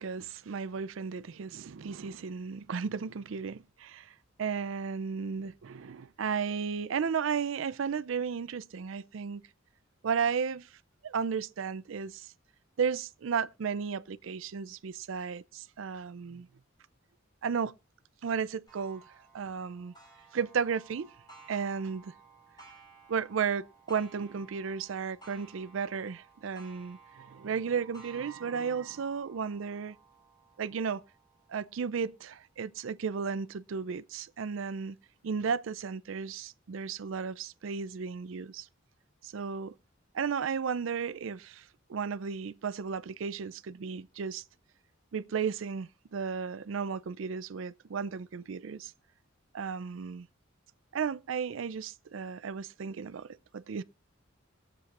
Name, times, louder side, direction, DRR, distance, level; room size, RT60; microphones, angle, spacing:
voice 1, 0.0-9.4 10.0-10.7 11.0-12.3 12.8-16.5 17.4-17.7 18.2-19.0 19.3-19.9 20.3-21.1 21.5-22.1 23.1-30.0 30.6-31.0 31.5-35.0 35.2-38.7 39.2-39.7 40.1-44.4 45.1-48.9 49.5-50.3 50.9-53.8, right 6 dB, 70° right, 0.4 m, -34 dB
Clock, 18.7-34.0 34.6-34.7 35.2-35.3 36.3-36.4, right 4 dB, 20° left, 4.1 m, -57 dB
22.5 x 7.6 x 2.4 m
head